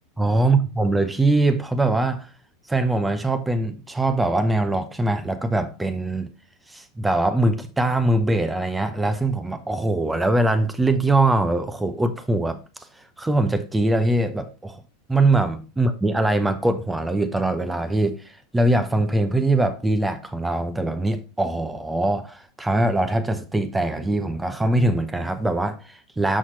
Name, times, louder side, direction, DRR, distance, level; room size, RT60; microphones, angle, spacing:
voice 1, 0.2-2.3 2.7-6.3 6.7-12.6 13.2-14.8 15.1-18.2 18.5-26.4, right 2 dB, 10° right, 0.8 m, -22 dB
6.1 x 5.8 x 4.1 m
hypercardioid pair, 85°, 0 cm